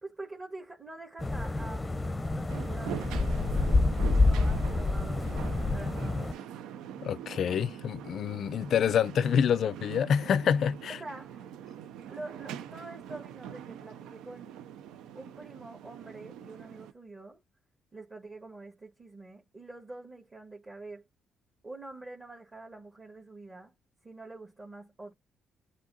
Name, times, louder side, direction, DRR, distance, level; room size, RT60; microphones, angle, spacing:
voice 1, 0.0-3.8 4.0-5.3 5.7-6.6 10.9-11.5 12.1-14.5 15.1-17.4 17.9-21.1 21.6-23.7 24.0-25.1, right 2 dB, 30° right, 1.5 m, -46 dB
sound 1, 1.2-6.3, left 3 dB, 20° left, 0.6 m, -28 dB
sound 2, 2.5-16.9, right 10 dB, 90° right, 0.4 m, -43 dB
voice 2, 7.0-11.0, left 8 dB, 65° left, 0.3 m, -27 dB
7.4 x 2.7 x 2.6 m
cardioid pair, 75°, 0 cm